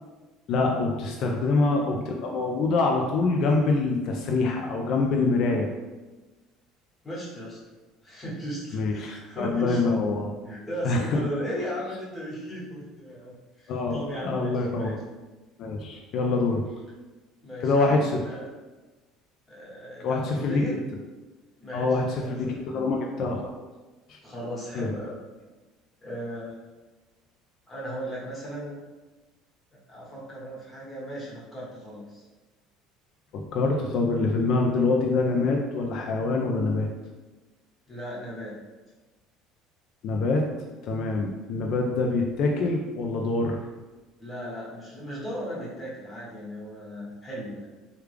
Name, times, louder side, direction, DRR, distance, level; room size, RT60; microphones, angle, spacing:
voice 1, 0.5-5.7 8.7-10.3 10.8-11.2 13.7-15.0 15.6-16.7 17.6-18.3 20.0-20.8 21.7-23.6 24.1-24.2 24.7-24.9 33.3-36.9 40.0-40.4 40.8-43.6, left 3 dB, 60° left, 1 dB, 0.4 m, -25 dB
voice 2, 7.0-7.6 8.0-9.8 10.4-15.0 17.4-18.5 19.5-20.8 21.6-22.9 24.2-25.2 26.0-26.6 27.7-28.8 29.9-32.2 37.9-38.6 44.2-47.7, equal, 20° left, -6 dB, 1.2 m, -36 dB
3.3 x 2.3 x 3.3 m, 1.2 s
supercardioid pair, 110°, 0 cm